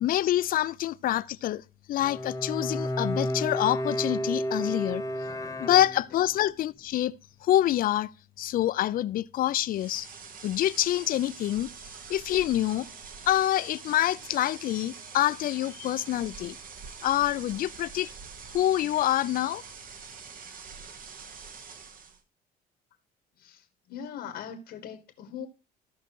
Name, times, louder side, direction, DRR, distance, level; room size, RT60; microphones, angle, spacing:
voice 1, 0.0-1.6 1.9-5.0 5.6-7.1 7.4-8.1 8.4-10.1 10.4-11.7 12.1-12.9 13.3-16.6 17.0-18.1 18.5-19.6, left 13 dB, 55° left, 0.5 m, -26 dB
Bowed string instrument, 2.0-6.4, equal, 20° left, 1.2 m, -31 dB
sound 1, 9.7-22.2, right 5 dB, 55° right, 1.4 m, -45 dB
voice 2, 23.4-25.5, left 8 dB, 75° left, 1.4 m, -41 dB
15.0 x 5.6 x 3.0 m
cardioid pair, 110°, 17 cm